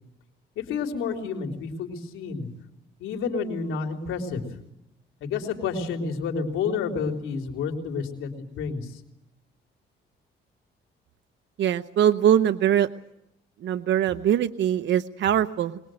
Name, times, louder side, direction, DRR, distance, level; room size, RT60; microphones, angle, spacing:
voice 1, 0.6-2.5 3.0-4.4 5.2-8.9, left 5 dB, 90° left, 3 dB, 3.6 m, -30 dB
voice 2, 11.6-12.9 13.6-15.8, right 10 dB, 65° right, 10 dB, 0.9 m, -22 dB
23.0 x 21.0 x 7.7 m, 0.85 s
cardioid pair, 90°, 20 cm